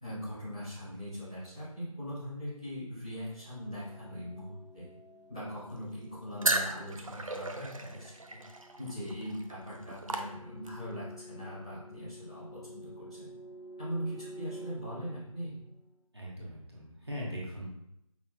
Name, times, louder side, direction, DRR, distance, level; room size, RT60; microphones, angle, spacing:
voice 1, 0.0-4.9 5.3-8.4 8.8-13.3 13.8-15.5, equal, 10° left, -16 dB, 1.1 m, -40 dB
sound 1, 3.3-16.0, equal, 55° left, 0.7 m, -51 dB
sound 2, 6.4-10.9, right 2 dB, 70° right, 0.5 m, -35 dB
voice 2, 16.1-17.7, equal, 45° right, -4 dB, 1.2 m, -40 dB
5.9 x 3.4 x 2.2 m, 0.81 s
figure-of-eight pair, 170°, 18 cm